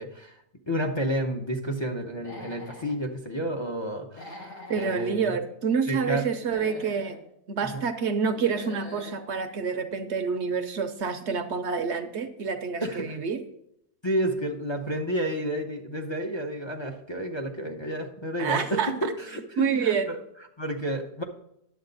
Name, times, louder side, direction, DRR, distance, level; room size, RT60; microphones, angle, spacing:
voice 1, 0.0-5.3 5.9-6.3 7.6-7.9 12.8-13.2 14.0-20.2 20.6-21.2, equal, 35° left, 2 dB, 0.4 m, -31 dB
Human voice / Animal, 2.1-2.9 4.1-5.1 6.3-7.2 8.3-9.2, left 2 dB, 85° left, 2.8 m, -43 dB
voice 2, 4.7-7.2 7.5-13.4 18.4-19.1 19.6-20.1, right 6 dB, 60° right, 8 dB, 0.8 m, -28 dB
10.5 x 7.6 x 3.9 m, 0.77 s
omnidirectional pair, 1.7 m